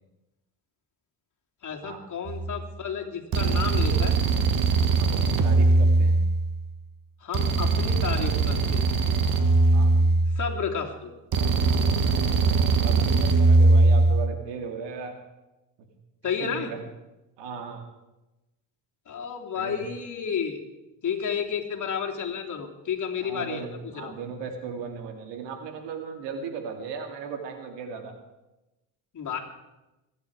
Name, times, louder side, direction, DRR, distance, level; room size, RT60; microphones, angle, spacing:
voice 1, 1.6-4.1 7.2-8.8 10.3-11.1 16.2-16.7 19.1-20.6 21.0-24.1 29.1-29.4, left 7 dB, 45° left, 1 dB, 3.1 m, -31 dB
sound 1, 2.3-2.5 3.3-6.6 7.3-10.6 11.3-14.3, right 3 dB, 50° right, 1.8 m, -21 dB
voice 2, 5.0-6.2 9.7-9.9 12.8-15.2 15.8-15.9 16.4-16.8 17.4-17.8 19.5-19.8 23.2-23.7 23.9-28.1, right 5 dB, 75° right, 5 dB, 2.6 m, -36 dB
23.0 x 10.5 x 4.8 m, 1.0 s
supercardioid pair, 75°, 42 cm